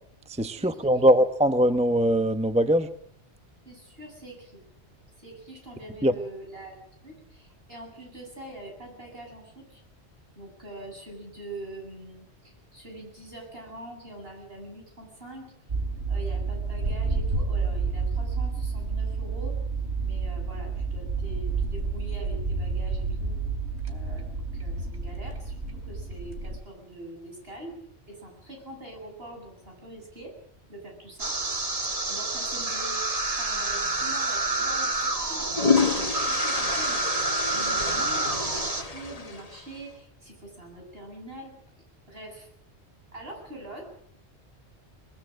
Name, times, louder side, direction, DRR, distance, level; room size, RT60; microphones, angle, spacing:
voice 1, 0.3-2.9 6.0-6.1, equal, 5° right, 9 dB, 0.9 m, -21 dB
voice 2, 3.6-4.6 5.2-9.8 10.3-15.5 16.1-19.6 20.0-23.4 23.9-27.8 28.0-30.4 30.7-31.4 32.1-35.7 36.2-41.5 42.1-42.5 43.1-43.8, right 1 dB, 60° right, 1 dB, 8.5 m, -43 dB
sound 1, 15.7-26.6, right 4 dB, 75° right, 3.5 m, -30 dB
sound 2, 31.2-38.8, right 2 dB, 35° right, 1.6 m, -28 dB
sound 3, 33.8-34.0 35.2-39.8, left 4 dB, 35° left, 1.4 m, -29 dB
21.5 x 21.0 x 7.6 m, 0.64 s
omnidirectional pair, 1.1 m